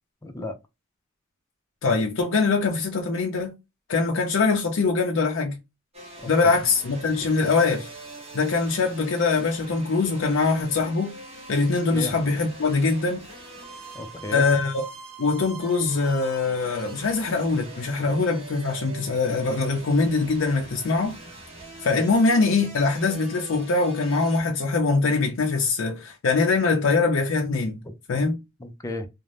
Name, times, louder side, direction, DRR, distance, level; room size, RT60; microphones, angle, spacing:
voice 1, 0.2-0.6 6.2-6.6 11.9-12.1 13.9-14.5 28.6-29.1, left 1 dB, 15° left, 0.5 m, -33 dB
voice 2, 1.8-3.6 3.9-5.6 6.3-7.9 8.3-11.1 11.5-13.2 14.3-14.7 15.2-21.2 21.8-27.8 28.1-28.4, left 4 dB, 70° left, 0.5 m, -23 dB
sound 1, 5.9-24.4, right 2 dB, 30° right, 1.0 m, -42 dB
2.6 x 2.1 x 3.2 m
head